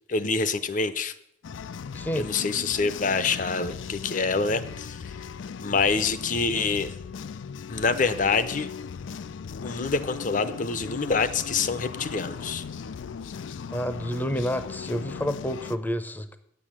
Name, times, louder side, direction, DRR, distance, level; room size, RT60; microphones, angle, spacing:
voice 1, 0.1-1.1 2.2-5.0 5.6-6.9 7.7-8.7 9.6-12.6, left 4 dB, 45° left, 12 dB, 0.7 m, -26 dB
sound 1, 1.4-15.8, left 6 dB, 80° left, 0.4 m, -38 dB
voice 2, 1.9-2.3 13.7-16.4, equal, 10° left, 10 dB, 0.7 m, -29 dB
9.7 x 8.4 x 7.4 m, 0.74 s
head